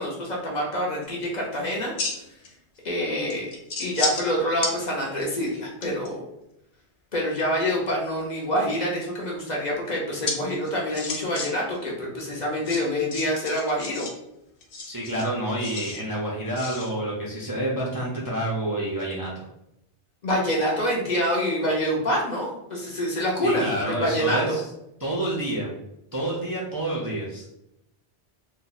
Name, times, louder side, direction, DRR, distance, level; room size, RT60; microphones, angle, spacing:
voice 1, 0.0-1.9 2.8-3.5 3.8-6.3 7.1-14.1 20.2-24.6, equal, 45° left, -3 dB, 0.7 m, -26 dB
sound 1, 1.0-1.2 1.7-2.5 2.8-2.9 3.3-4.3 4.6-4.7 5.2-6.1 8.2-8.8 10.3-10.4 10.6-11.5 11.7-11.8 12.6-14.1 14.6-16.0 16.6-16.9, left 3 dB, 70° left, 0.9 m, -31 dB
voice 2, 14.9-19.3 23.4-24.6 25.0-25.7 26.1-27.4, right 1 dB, 30° right, -5 dB, 0.4 m, -28 dB
2.6 x 2.2 x 3.9 m, 0.83 s
omnidirectional pair, 1.2 m